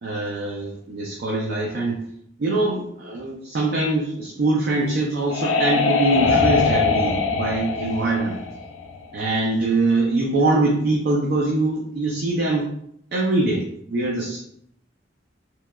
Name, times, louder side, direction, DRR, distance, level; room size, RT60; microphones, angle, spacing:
voice 1, 0.0-2.0 2.4-8.4 9.1-12.7 13.1-14.4, right 2 dB, 55° right, -2 dB, 0.4 m, -23 dB
sound 1, 4.7-9.3, left 4 dB, 85° left, 0.4 m, -22 dB
2.9 x 2.2 x 2.2 m, 0.71 s
head